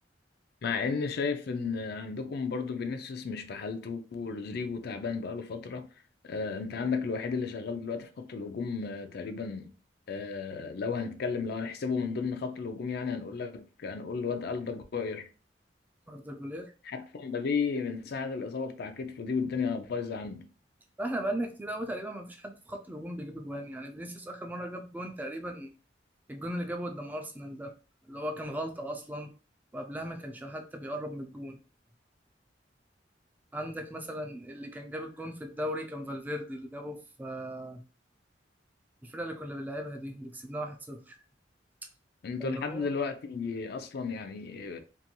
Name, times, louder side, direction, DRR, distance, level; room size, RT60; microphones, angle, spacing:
voice 1, 0.6-5.9 6.2-9.7 10.1-15.3 16.9-20.5 42.2-44.8, left 5 dB, 60° left, 0.4 m, -33 dB
voice 2, 16.1-16.7 21.0-25.7 26.3-27.7 28.1-29.3 29.7-31.6 33.5-37.8 39.0-41.2 42.4-43.1, equal, 10° right, 0.3 m, -37 dB
2.9 x 2.6 x 2.2 m
head